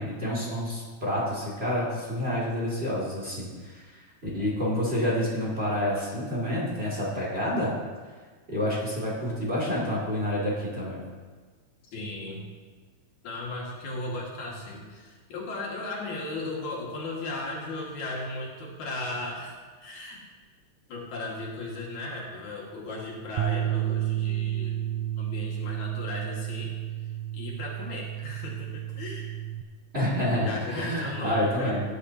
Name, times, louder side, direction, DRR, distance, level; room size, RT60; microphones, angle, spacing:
voice 1, 0.0-7.7 8.5-11.0 29.9-31.8, left 1 dB, 20° right, -5 dB, 2.4 m, -28 dB
voice 2, 11.9-12.5 13.2-20.2 20.9-24.8 25.2-26.7 27.3-29.3 30.3-31.8, left 2 dB, 80° left, -3 dB, 3.3 m, -36 dB
sound 1, 23.4-29.6, right 13 dB, 80° right, 1.5 m, -31 dB
16.5 x 10.0 x 2.9 m, 1.5 s
omnidirectional pair, 3.4 m